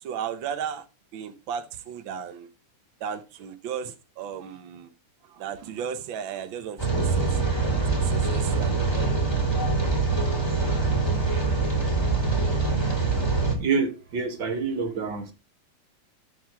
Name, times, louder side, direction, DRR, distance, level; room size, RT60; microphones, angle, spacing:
voice 1, 0.0-0.8 1.1-2.5 3.0-4.9 5.3-9.3, right 8 dB, 75° right, 1.1 m, -35 dB
Rain, 6.8-13.6, right 4 dB, 10° left, 3.8 m, -24 dB
voice 2, 13.6-15.3, right 5 dB, 45° right, 2.4 m, -27 dB
13.5 x 5.8 x 4.7 m
omnidirectional pair, 3.5 m